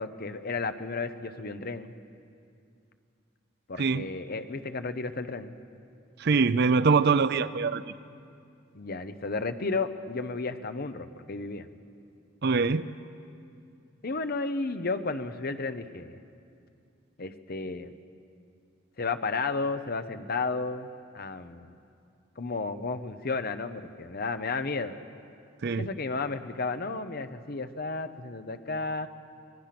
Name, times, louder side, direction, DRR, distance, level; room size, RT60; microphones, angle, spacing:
voice 1, 0.0-1.9 3.7-5.5 8.7-11.7 14.0-16.2 17.2-17.9 19.0-20.9 21.1-21.8 22.4-25.0 25.8-29.1, left 3 dB, 50° left, 10 dB, 0.9 m, -33 dB
voice 2, 6.2-7.8 12.4-12.8 25.6-25.9, right 4 dB, 55° right, 14 dB, 0.6 m, -23 dB
25.5 x 20.0 x 6.0 m, 2.5 s
head